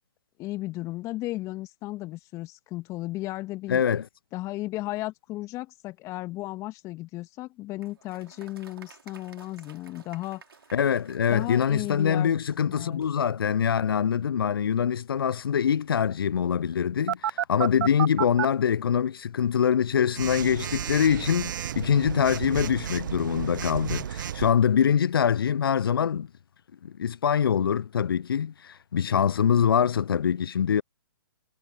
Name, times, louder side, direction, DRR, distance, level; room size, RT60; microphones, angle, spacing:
voice 1, 0.4-3.8 4.3-10.4 11.3-13.0, left 18 dB, 25° left, 2.0 m, -35 dB
voice 2, 3.7-4.1 10.7-26.3 26.8-30.8, left 8 dB, 70° left, 0.4 m, -24 dB
Applause, 7.8-13.3, right 6 dB, 70° right, 3.2 m, -54 dB
Telephone, 17.1-18.4 20.1-24.5, right 10 dB, 55° right, 0.8 m, -31 dB
figure-of-eight pair, 125°, 13 cm